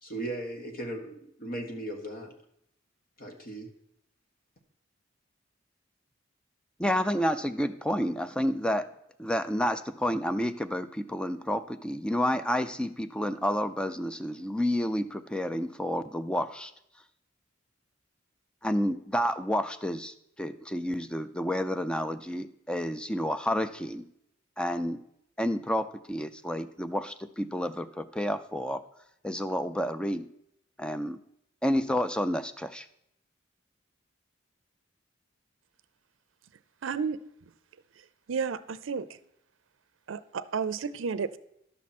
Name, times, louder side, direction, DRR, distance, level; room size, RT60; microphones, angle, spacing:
voice 1, 0.0-2.3 3.2-3.7, right 1 dB, 50° left, 4 dB, 1.4 m, -37 dB
voice 2, 6.8-8.8 9.2-16.7 18.6-24.0 24.6-25.0 25.4-28.8 29.2-30.3 30.8-31.2 31.6-32.9, equal, 5° left, 11 dB, 0.4 m, -30 dB
voice 3, 36.8-37.2 38.3-39.2 40.1-41.4, right 6 dB, 70° right, 15 dB, 0.5 m, -32 dB
11.5 x 7.4 x 4.2 m, 0.76 s
head